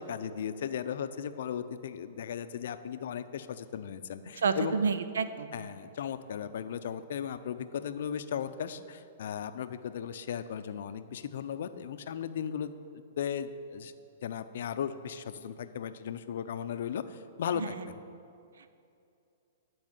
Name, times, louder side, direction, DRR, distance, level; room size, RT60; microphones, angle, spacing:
voice 1, 0.0-4.8 5.5-13.9 14.2-18.0, left 8 dB, 70° left, 11 dB, 0.5 m, -36 dB
voice 2, 4.4-5.7 17.5-17.8, right 5 dB, 85° right, 12 dB, 0.5 m, -30 dB
10.5 x 4.7 x 8.1 m, 2.5 s
hypercardioid pair, 135°, 0 cm